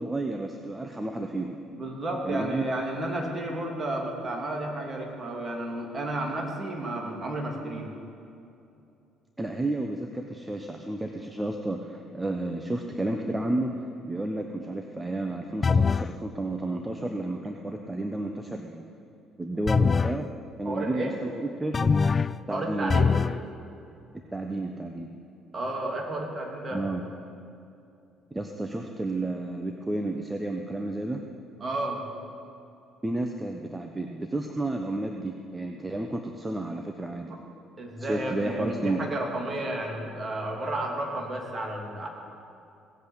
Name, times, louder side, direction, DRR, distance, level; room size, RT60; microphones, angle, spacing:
voice 1, 0.0-1.6 2.2-2.7 9.4-18.8 19.4-20.3 20.6-21.9 22.5-23.0 24.3-25.1 26.7-27.0 28.3-31.2 33.0-37.3 38.0-39.0, right 2 dB, 15° right, 4 dB, 1.0 m, -31 dB
voice 2, 1.7-7.9 20.6-21.2 22.5-23.2 25.5-26.8 31.6-32.0 37.8-42.1, right 1 dB, 35° right, 0 dB, 3.0 m, -32 dB
sound 1, 15.6-16.1 19.7-20.2 21.7-22.4 22.9-23.4, left 5 dB, 30° left, 0.3 m, -23 dB
17.5 x 8.2 x 8.1 m, 2.7 s
figure-of-eight pair, 50°, 0 cm